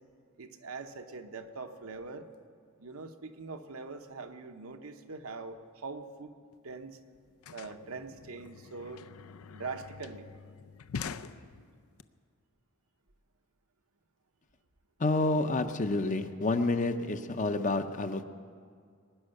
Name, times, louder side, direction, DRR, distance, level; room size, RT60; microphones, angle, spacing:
voice 1, 0.4-2.3 2.8-6.3 6.6-7.0 7.5-9.0 9.5-10.3, right 4 dB, 80° right, 6 dB, 1.0 m, -42 dB
sound 1, 6.5-6.6 6.8-12.0, left 6 dB, 85° left, 0.5 m, -45 dB
voice 2, 15.0-18.2, left 2 dB, 35° left, 9 dB, 0.7 m, -29 dB
21.0 x 9.7 x 6.5 m, 2.2 s
head